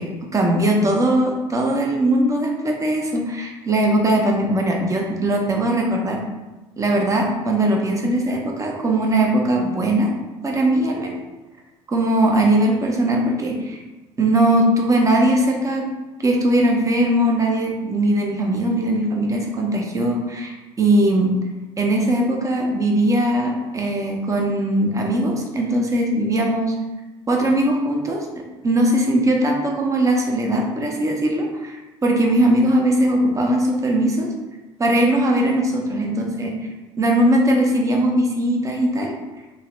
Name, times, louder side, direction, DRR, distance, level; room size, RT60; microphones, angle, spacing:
voice 1, 0.0-6.2 6.8-10.1 10.4-11.2 11.9-13.8 14.2-15.9 16.2-21.3 21.8-26.8 27.3-28.3 28.6-34.3 34.8-36.5 37.0-39.1, right 1 dB, 20° right, 1 dB, 0.6 m, -20 dB
2.8 x 2.7 x 3.1 m, 1.1 s
figure-of-eight pair, 60°, 15 cm